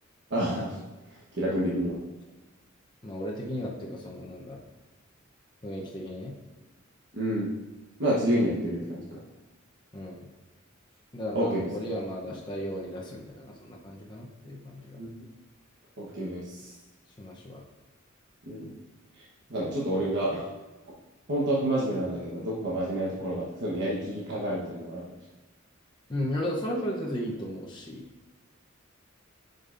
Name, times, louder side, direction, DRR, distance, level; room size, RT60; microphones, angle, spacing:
voice 1, 0.3-0.8 1.4-2.0 7.1-7.5 8.0-9.2 11.3-11.7 15.0-15.1 16.0-16.7 18.4-18.7 19.5-20.5 21.3-25.0, right 1 dB, 60° right, -6 dB, 1.2 m, -29 dB
voice 2, 3.0-4.6 5.6-6.4 9.9-10.3 11.1-15.0 17.2-17.6 26.1-28.1, equal, 25° left, -3 dB, 0.8 m, -35 dB
10.5 x 5.3 x 2.6 m, 1.2 s
head